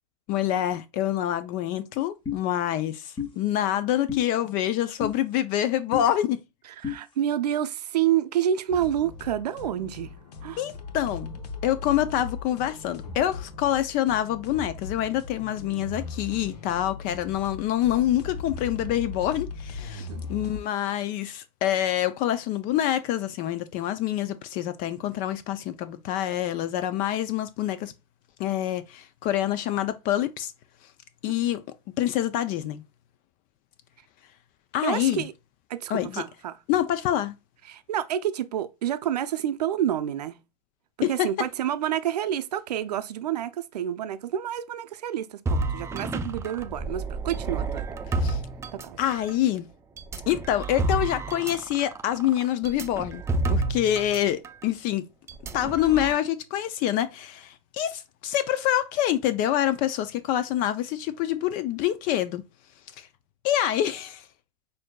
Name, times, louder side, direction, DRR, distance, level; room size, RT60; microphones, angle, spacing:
voice 1, 0.3-6.4 10.6-11.3 11.6-27.9 28.4-30.5 31.2-31.6 32.0-32.8 34.7-35.2 35.9-36.2 36.7-37.4 41.0-41.3 48.2-48.4 49.0-49.7 50.3-53.2 53.5-55.1 55.5-62.4 63.0-63.1 63.4-64.3, left 12 dB, 45° left, 0.4 m, -26 dB
sound 1, 2.3-2.4 3.2-3.3 4.1-4.2 5.0-5.2 5.9-6.1 6.8-7.0, left 7 dB, 25° left, 1.1 m, -30 dB
voice 2, 6.8-10.1 10.4-10.6 20.1-20.2 34.8-35.3 35.7-36.6 37.7-40.4 41.0-47.8 48.7-49.0, right 10 dB, 90° right, 0.5 m, -28 dB
sound 2, 8.7-20.6, left 3 dB, 90° left, 0.9 m, -39 dB
sound 3, 45.5-49.3 50.0-54.2 54.4-54.6 55.3-56.1, right 2 dB, 15° right, 0.4 m, -30 dB
6.3 x 2.7 x 2.2 m
hypercardioid pair, 110°, 20 cm